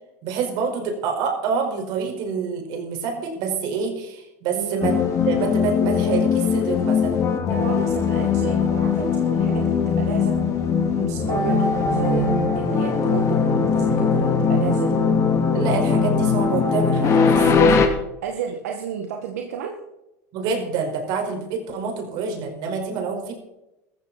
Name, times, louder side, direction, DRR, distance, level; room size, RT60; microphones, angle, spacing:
voice 1, 0.2-7.3 15.5-17.8 20.3-23.3, right 5 dB, 60° right, 3 dB, 5.0 m, -27 dB
voice 2, 4.5-4.9 7.5-10.4 11.0-15.0 18.2-19.7, right 7 dB, 85° right, 3 dB, 2.0 m, -31 dB
sound 1, 4.8-17.9, left 5 dB, 35° left, 3.1 m, -20 dB
14.5 x 14.5 x 4.3 m, 0.89 s
supercardioid pair, 100°, 8 cm